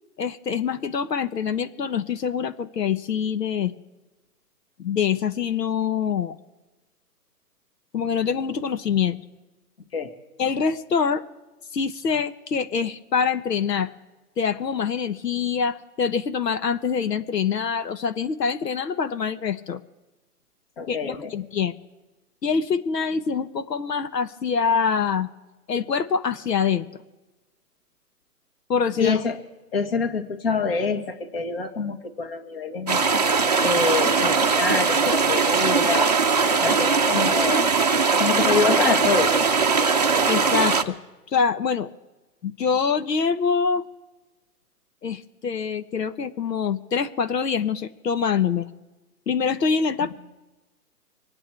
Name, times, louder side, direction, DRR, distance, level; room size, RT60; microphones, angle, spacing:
voice 1, 0.2-3.7 4.8-6.4 7.9-9.2 10.4-11.2 11.7-13.9 14.4-19.8 20.9-21.7 22.4-25.3 25.7-26.9 28.7-29.2 40.3-41.0 41.3-41.9 42.4-43.8 45.0-48.7 49.3-50.1, left 6 dB, 85° left, 11 dB, 1.1 m, -25 dB
voice 2, 20.8-21.3 29.0-29.4 29.7-33.0 33.6-36.1 36.5-37.7 38.2-39.3 50.0-50.1, left 4 dB, 35° left, 7 dB, 1.6 m, -26 dB
sound 1, 32.9-40.8, right 5 dB, 25° right, 0.6 m, -20 dB
25.0 x 9.1 x 4.5 m, 1.1 s
hypercardioid pair, 165°, 48 cm